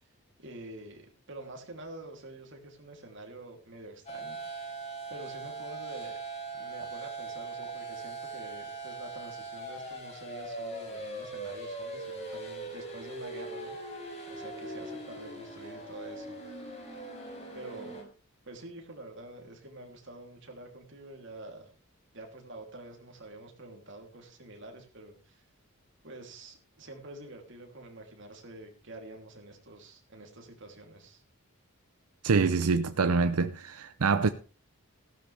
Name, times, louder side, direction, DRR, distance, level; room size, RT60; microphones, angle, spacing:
voice 1, 0.4-4.6 5.1-6.2 6.5-16.4 17.5-18.0 18.5-21.7 22.1-25.4 26.0-31.2, right 2 dB, 55° right, 3.0 m, -47 dB
sound 1, 4.1-18.0, right 2 dB, 30° left, 4.8 m, -40 dB
voice 2, 32.2-34.3, right 4 dB, 85° right, 0.6 m, -25 dB
15.0 x 12.5 x 3.4 m
head